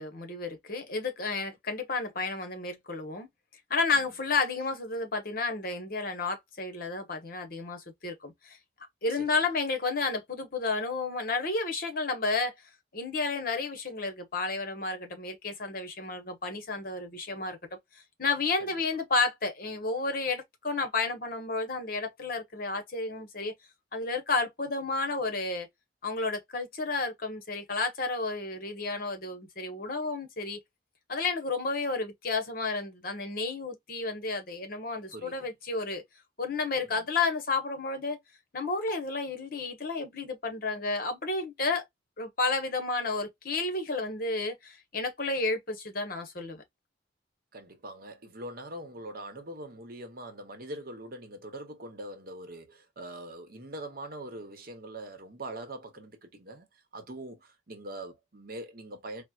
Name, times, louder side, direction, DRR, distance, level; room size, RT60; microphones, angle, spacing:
voice 1, 0.0-3.3 3.7-8.6 9.0-12.5 12.9-17.6 18.2-23.5 23.9-25.7 26.0-30.6 31.1-36.0 36.4-38.2 38.5-41.8 42.2-46.6, left 3 dB, 50° left, 1.0 m, -31 dB
voice 2, 35.1-35.5 36.9-37.1 47.5-59.2, right 1 dB, 50° right, 0.9 m, -43 dB
4.2 x 2.1 x 2.3 m
head